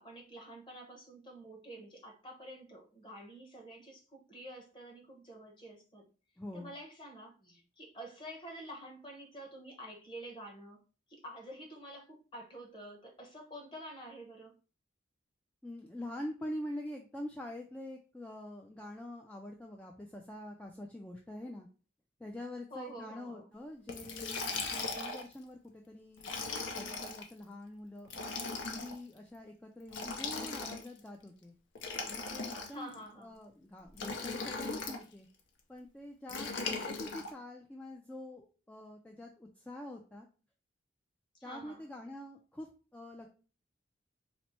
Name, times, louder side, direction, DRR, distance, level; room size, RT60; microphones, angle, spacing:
voice 1, 0.0-6.0 6.5-10.8 11.1-14.5 22.7-23.5 32.7-33.4 36.6-37.0 41.3-41.8, right 1 dB, 25° left, 1.0 m, -49 dB
voice 2, 6.4-6.7 15.6-21.7 22.2-26.3 26.8-31.5 32.0-35.3 35.7-40.3 41.4-42.7 42.9-43.3, left 1 dB, 5° left, 0.3 m, -45 dB
Liquid, 23.9-25.3 26.2-27.2 28.0-29.0 29.9-31.0 31.7-32.9 33.9-35.0 36.3-37.3, left 4 dB, 75° left, 0.7 m, -38 dB
4.2 x 2.0 x 4.3 m
head